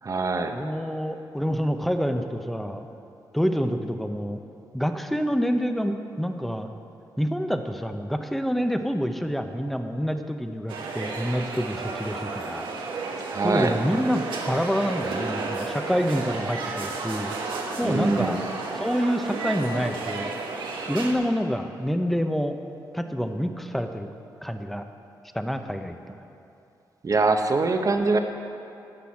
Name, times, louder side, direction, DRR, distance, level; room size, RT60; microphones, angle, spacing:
voice 1, 0.0-0.6 13.3-13.7 17.8-18.4 27.0-28.2, right 3 dB, 45° right, 6 dB, 1.0 m, -23 dB
voice 2, 0.5-2.9 3.3-4.4 4.7-6.7 7.2-12.7 13.4-17.3 17.8-18.5 18.7-20.3 20.9-22.6 22.9-24.1 24.4-24.9 25.3-26.2, equal, ahead, 7 dB, 0.9 m, -27 dB
sound 1, 10.7-21.1, right 3 dB, 85° right, 1.3 m, -32 dB
12.0 x 6.1 x 8.6 m, 2.7 s
cardioid pair, 65°, 8 cm